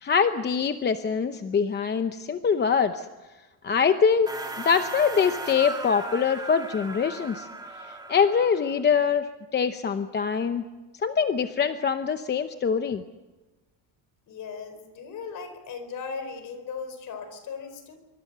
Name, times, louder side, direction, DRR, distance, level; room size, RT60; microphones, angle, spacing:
voice 1, 0.0-3.1 3.6-4.3 4.6-7.5 8.1-9.3 9.5-10.6 11.0-13.0, left 6 dB, 25° left, 8 dB, 0.8 m, -24 dB
sound 1, 4.3-8.8, right 2 dB, 10° right, 2.7 m, -37 dB
voice 2, 14.3-18.0, left 5 dB, 40° left, 9 dB, 4.5 m, -37 dB
25.5 x 24.5 x 6.8 m, 1.2 s
cardioid pair, 180°, 45 cm